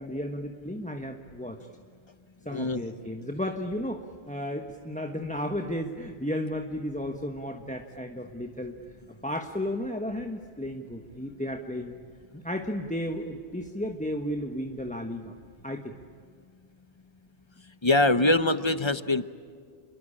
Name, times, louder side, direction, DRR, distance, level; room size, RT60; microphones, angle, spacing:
voice 1, 0.0-1.7 2.4-8.8 9.1-11.9 12.3-15.3 15.6-15.9, left 1 dB, 5° left, 4 dB, 1.2 m, -33 dB
voice 2, 2.5-2.8 17.8-19.3, left 2 dB, 30° left, 12 dB, 0.9 m, -23 dB
28.0 x 22.0 x 8.7 m, 2.1 s
omnidirectional pair, 1.1 m